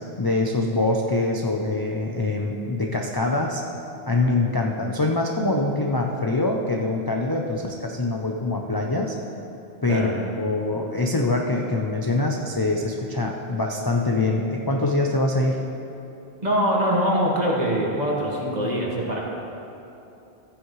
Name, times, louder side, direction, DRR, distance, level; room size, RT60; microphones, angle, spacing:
voice 1, 0.2-3.6 4.0-9.2 9.8-10.1 10.4-15.6, left 2 dB, 30° left, 0 dB, 0.4 m, -24 dB
voice 2, 16.4-19.2, equal, 40° right, -3 dB, 1.7 m, -23 dB
14.5 x 9.2 x 3.2 m, 2.9 s
omnidirectional pair, 1.1 m